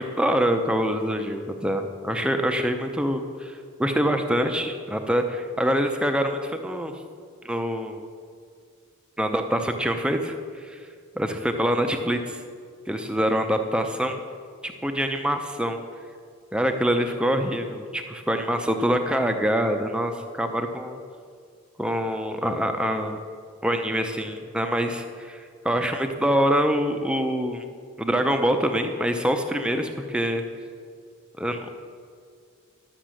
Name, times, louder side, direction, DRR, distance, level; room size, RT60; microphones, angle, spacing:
voice 1, 0.0-6.9 7.4-8.0 9.2-10.3 10.6-10.8 11.2-12.4 12.9-14.2 14.6-15.8 16.5-21.0 21.8-23.2 23.6-27.6 28.0-30.4 31.4-31.7, equal, 5° right, 5 dB, 0.6 m, -25 dB
11.5 x 6.0 x 7.6 m, 2.2 s
head